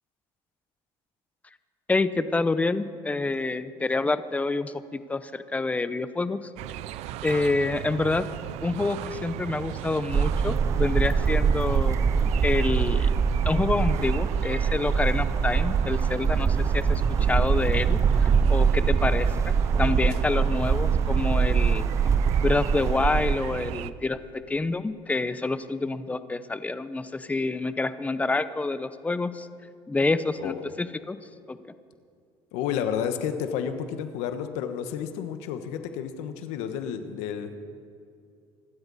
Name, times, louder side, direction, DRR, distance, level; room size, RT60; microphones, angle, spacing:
voice 1, 1.9-6.4 7.2-8.3 8.6-12.0 12.4-13.1 13.5-21.8 22.4-24.2 24.5-29.5 29.9-31.2 31.5-31.6, left 3 dB, 10° left, 13 dB, 0.7 m, -27 dB
sound 1, 6.6-23.9, right 13 dB, 70° right, 0.6 m, -36 dB
sound 2, 10.1-23.4, right 6 dB, 25° right, 0.5 m, -23 dB
voice 2, 32.5-37.6, left 8 dB, 80° left, 8 dB, 1.3 m, -31 dB
25.0 x 13.0 x 4.2 m, 2.4 s
cardioid pair, 115°, 11 cm